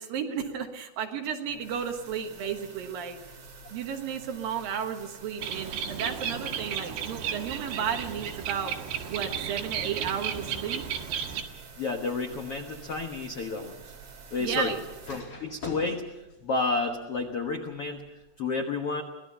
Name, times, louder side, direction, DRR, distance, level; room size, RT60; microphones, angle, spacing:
voice 1, 0.0-3.2 3.7-8.7 9.1-10.8 14.4-14.8, right 7 dB, 65° right, 4 dB, 2.8 m, -33 dB
sound 1, 1.5-15.2, right 5 dB, 40° right, 3.7 m, -48 dB
Bird, 5.4-11.4, right 8 dB, 90° right, 4.0 m, -34 dB
sound 2, 11.3-18.2, left 2 dB, 40° left, 5.6 m, -49 dB
voice 2, 11.7-13.9 14.3-14.7 15.1-18.1 18.4-19.0, left 3 dB, 75° left, 3 dB, 1.3 m, -31 dB
24.5 x 18.5 x 5.7 m, 1.0 s
omnidirectional pair, 4.9 m